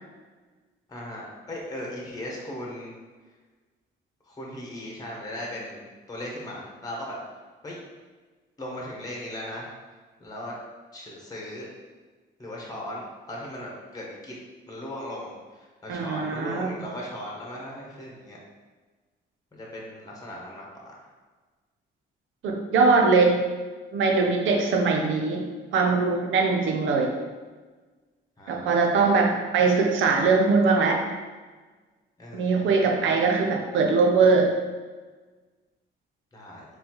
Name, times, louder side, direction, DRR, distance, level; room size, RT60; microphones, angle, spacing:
voice 1, 0.9-2.9 4.3-7.2 7.6-7.8 8.6-9.7 10.2-10.5 10.9-11.7 12.4-14.3 14.7-18.4 19.5-20.9 28.4-28.7 32.2-32.8 36.3-36.6, left 1 dB, 20° left, -3 dB, 1.1 m, -38 dB
voice 2, 15.9-16.7 22.4-23.4 23.9-25.5 25.7-27.1 28.5-31.0 32.3-34.5, right 4 dB, 75° right, 2 dB, 0.7 m, -21 dB
4.2 x 3.3 x 3.0 m, 1.3 s
cardioid pair, 90°, 20 cm